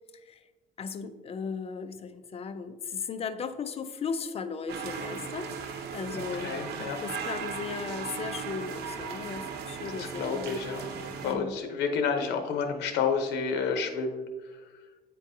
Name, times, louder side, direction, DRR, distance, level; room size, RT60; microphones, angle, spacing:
voice 1, 0.8-6.6 7.0-10.6 11.2-11.6, left 5 dB, 35° left, 10 dB, 0.5 m, -36 dB
sound 1, 4.7-11.3, right 6 dB, 75° right, 0.8 m, -37 dB
voice 2, 6.1-7.0 9.9-14.6, left 5 dB, 85° left, 5 dB, 0.8 m, -30 dB
9.1 x 3.9 x 2.7 m, 1.3 s
cardioid pair, 110°, 17 cm